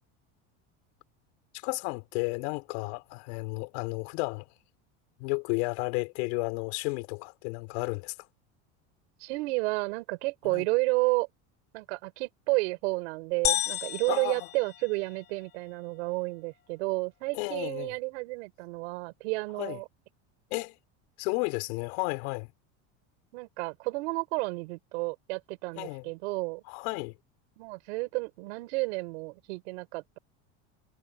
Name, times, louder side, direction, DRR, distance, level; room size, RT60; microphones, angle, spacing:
voice 1, 1.5-4.5 5.2-8.1 10.5-10.6 14.1-14.5 17.3-17.9 19.6-19.8 20.5-20.8 21.2-22.5 25.8-26.0 26.7-27.1, left 28 dB, 70° left, 5.6 m, -32 dB
voice 2, 9.2-11.3 11.7-19.8 23.3-26.6 27.6-30.2, right 27 dB, 85° right, 5.9 m, -31 dB
sound 1, 13.4-15.4, left 13 dB, 30° left, 1.1 m, -32 dB
cardioid pair, 170°, 32 cm